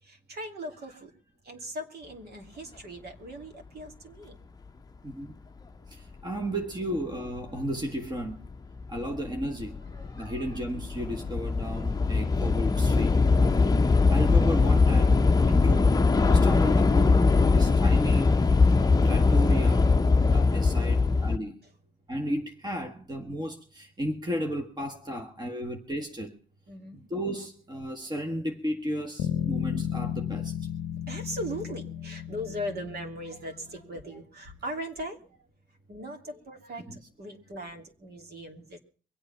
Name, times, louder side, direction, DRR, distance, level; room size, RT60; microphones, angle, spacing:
voice 1, 0.0-1.1 1.4-4.4 9.9-10.3 20.6-21.1 26.7-27.1 31.1-35.2 35.9-38.8, equal, 55° right, 3.0 m, -39 dB
voice 2, 5.9-8.4 8.9-9.8 10.1-13.2 14.1-18.3 18.6-19.9 20.2-21.6 22.1-26.3 26.9-30.5 36.9-37.0, equal, 20° right, 1.7 m, -34 dB
Train / Subway metro underground, 7.4-7.5 8.3-8.5 8.8-21.4, left 4 dB, 20° left, 0.8 m, -22 dB
Bass guitar, 29.2-33.6, left 10 dB, 90° left, 0.7 m, -33 dB
24.0 x 8.3 x 5.7 m
cardioid pair, 90°, 20 cm